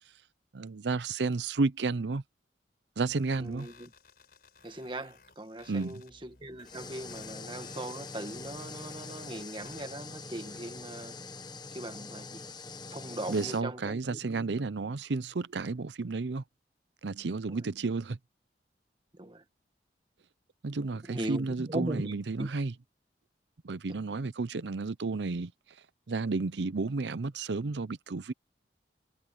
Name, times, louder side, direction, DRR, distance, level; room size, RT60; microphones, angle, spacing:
voice 1, 0.5-2.2 3.0-3.7 5.7-6.0 13.3-16.4 17.0-18.2 20.6-22.7 23.6-25.5 26.1-28.3, right 3 dB, 80° right, 0.6 m, -32 dB
sound 1, 3.1-11.1, left 4 dB, 60° left, 4.9 m, -58 dB
voice 2, 3.4-3.9 4.6-11.2 11.7-12.5 12.9-14.6 17.5-17.6 19.2-19.4 21.1-22.5, right 1 dB, 30° right, 1.8 m, -39 dB
sound 2, 6.6-13.6, left 3 dB, 25° left, 1.0 m, -44 dB
head